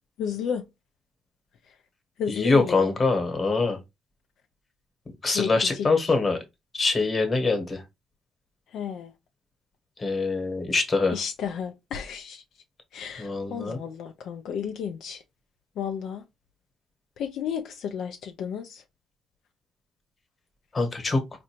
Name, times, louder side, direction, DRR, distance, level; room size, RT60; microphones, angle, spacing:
voice 1, 0.2-0.6 2.2-2.9 5.3-6.1 8.7-9.1 11.1-12.4 12.9-15.2 15.8-16.2 17.2-18.8, left 7 dB, 75° left, 0.4 m, -32 dB
voice 2, 2.3-3.8 5.2-6.4 6.7-7.8 10.0-11.1 13.2-13.8 20.7-21.2, left 3 dB, 35° left, 1.1 m, -24 dB
4.2 x 2.5 x 2.9 m
cardioid pair, 90°, 0 cm